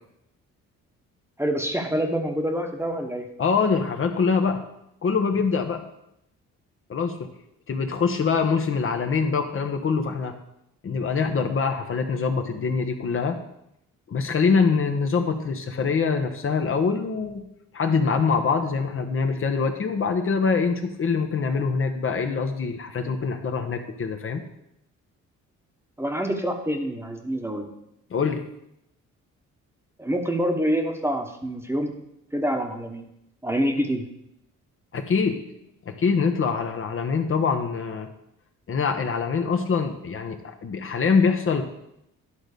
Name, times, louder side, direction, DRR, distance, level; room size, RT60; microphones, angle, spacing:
voice 1, 1.4-3.3 26.0-27.7 30.0-31.9 32.3-33.0 33.4-34.1, equal, 10° right, 4 dB, 1.2 m, -26 dB
voice 2, 3.4-4.6 5.0-5.8 6.9-7.3 7.7-10.3 10.8-13.4 14.1-17.4 17.7-24.4 28.1-28.4 34.9-35.4 35.9-38.1 38.7-41.6, left 5 dB, 45° left, 5 dB, 1.0 m, -24 dB
11.5 x 3.9 x 6.6 m, 0.80 s
cardioid pair, 90°, 30 cm